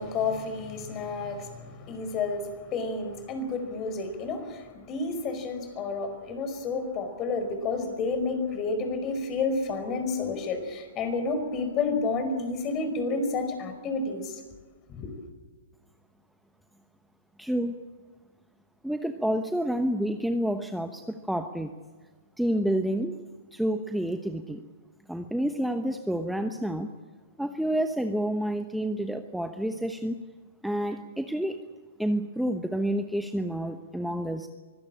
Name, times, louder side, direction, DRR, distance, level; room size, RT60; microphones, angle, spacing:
voice 1, 0.0-14.4 14.9-15.1, left 3 dB, 30° left, 8 dB, 5.1 m, -30 dB
voice 2, 17.4-17.8 18.8-21.7 22.4-23.2 23.5-24.6 25.1-26.9 27.4-30.2 30.6-31.6 32.0-34.5, right 1 dB, ahead, 6 dB, 1.1 m, -29 dB
24.5 x 16.5 x 8.7 m, 1.4 s
hypercardioid pair, 125°, 0 cm